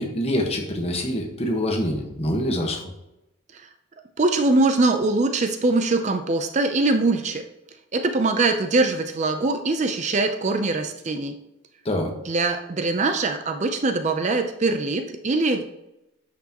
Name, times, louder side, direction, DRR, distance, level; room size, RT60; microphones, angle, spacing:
voice 1, 0.0-2.9 11.8-12.1, left 1 dB, 30° left, 2 dB, 1.3 m, -25 dB
voice 2, 4.2-7.4 7.9-11.4 12.3-15.6, right 3 dB, 35° right, 7 dB, 0.5 m, -22 dB
9.9 x 6.0 x 2.9 m, 0.90 s
head